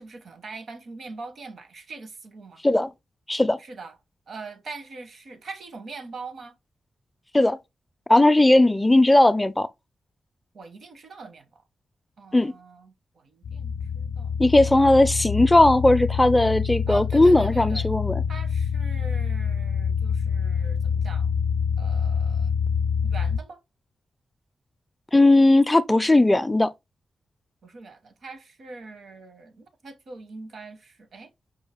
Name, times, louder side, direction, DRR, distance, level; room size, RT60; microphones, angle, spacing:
voice 1, 0.0-2.6 3.6-4.0 4.3-6.6 10.5-11.5 12.2-14.5 16.9-17.9 18.3-21.3 21.8-22.5 23.0-23.6 27.6-31.3, right 3 dB, 65° right, 0.9 m, -42 dB
voice 2, 8.1-9.7 12.3-12.5 14.4-18.2 25.1-26.7, left 2 dB, 10° left, 0.4 m, -18 dB
sound 1, 13.4-23.4, left 6 dB, 90° left, 0.3 m, -26 dB
5.4 x 2.4 x 3.5 m
wide cardioid pair, 140°, 0 cm